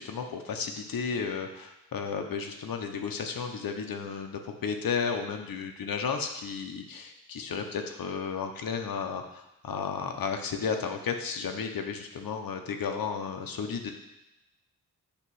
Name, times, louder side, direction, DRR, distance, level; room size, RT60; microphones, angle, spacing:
voice 1, 0.0-13.9, left 6 dB, 70° left, 4 dB, 0.9 m, -33 dB
8.6 x 3.0 x 6.3 m, 0.90 s
wide cardioid pair, 125°, 36 cm